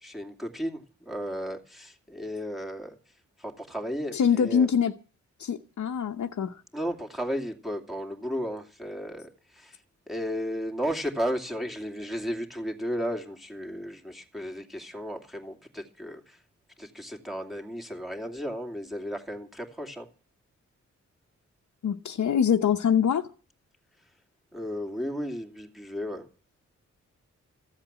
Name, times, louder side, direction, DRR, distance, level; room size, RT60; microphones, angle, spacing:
voice 1, 0.0-2.9 3.4-4.7 6.7-9.8 10.1-16.4 16.8-20.1 24.5-26.3, equal, ahead, 2.6 m, -34 dB
voice 2, 4.1-4.9 5.4-6.6 21.8-23.3, left 7 dB, 75° left, 0.9 m, -24 dB
15.0 x 8.0 x 8.7 m
wide cardioid pair, 105°, 29 cm